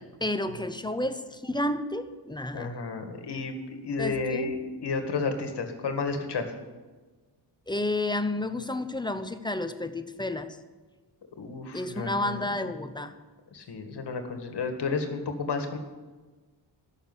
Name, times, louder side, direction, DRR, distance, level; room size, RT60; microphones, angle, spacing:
voice 1, 0.0-2.7 4.0-4.5 7.7-10.6 11.7-13.1, left 1 dB, 10° left, 10 dB, 0.8 m, -31 dB
voice 2, 2.5-6.5 11.4-12.5 13.5-15.8, left 4 dB, 60° left, 6 dB, 2.0 m, -32 dB
13.0 x 6.6 x 9.8 m, 1.3 s
cardioid pair, 95°, 47 cm